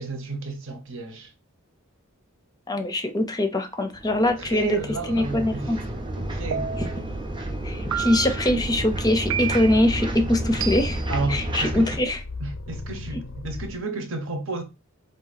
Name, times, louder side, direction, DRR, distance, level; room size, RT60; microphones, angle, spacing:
voice 1, 0.0-1.3 4.2-5.9 6.2-6.7 11.1-12.0 12.4-14.6, right 3 dB, 65° right, 0.9 m, -32 dB
voice 2, 2.7-4.8 5.1-5.8 6.8-6.9 7.6-11.0 11.3-12.2, left 1 dB, 20° left, 0.5 m, -23 dB
sound 1, 3.9-12.0, right 1 dB, 25° right, 0.7 m, -31 dB
sound 2, 6.5-7.1 7.9-8.5 9.3-9.9 10.6-11.2, right 8 dB, 90° right, 0.5 m, -30 dB
sound 3, 7.6-13.8, left 3 dB, 65° left, 0.5 m, -39 dB
4.0 x 2.6 x 4.0 m
head